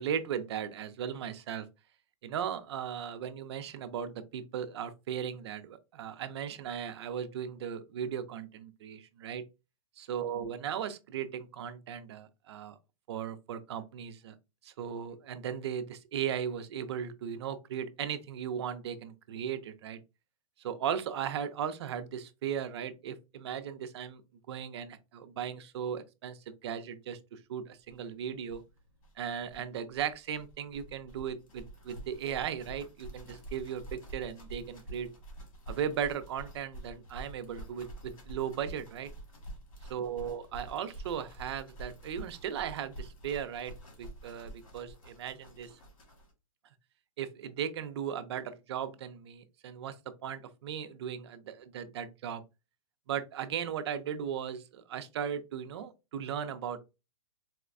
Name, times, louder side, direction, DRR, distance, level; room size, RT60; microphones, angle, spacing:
voice 1, 0.0-1.7 2.2-9.4 10.0-12.7 13.1-14.3 14.6-20.0 20.6-24.2 24.5-28.6 29.2-35.1 35.7-39.1 39.9-45.7 47.2-50.0 50.2-52.4 53.1-56.8, right 8 dB, 55° right, 0.5 m, -37 dB
sound 1, 27.9-28.0 28.2-28.3 28.4-46.3, right 1 dB, 85° left, 1.5 m, -48 dB
4.1 x 2.1 x 2.4 m
hypercardioid pair, 155°, 17 cm